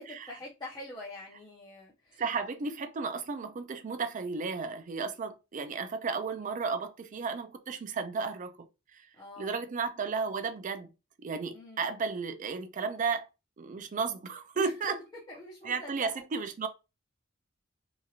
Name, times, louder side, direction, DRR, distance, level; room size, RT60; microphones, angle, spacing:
voice 1, 0.0-2.2 9.2-9.6 11.5-11.9 14.5-16.2, left 1 dB, 20° left, 0.7 m, -45 dB
voice 2, 2.2-8.5 8.9-9.0 9.4-10.9 11.2-13.3 13.6-15.0 15.6-16.7, right 5 dB, 40° right, 0.4 m, -33 dB
2.9 x 2.8 x 2.4 m
head